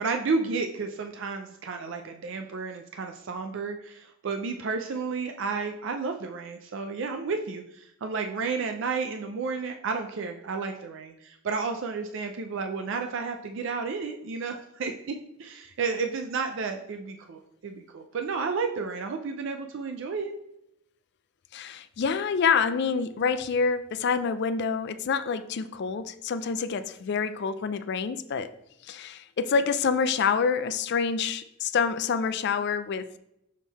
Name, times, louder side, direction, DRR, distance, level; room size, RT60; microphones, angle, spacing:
voice 1, 0.0-20.3, right 4 dB, 60° right, 5 dB, 0.4 m, -32 dB
voice 2, 21.5-28.5 28.9-33.1, left 5 dB, 55° left, 12 dB, 0.4 m, -27 dB
6.3 x 3.6 x 4.0 m, 0.80 s
head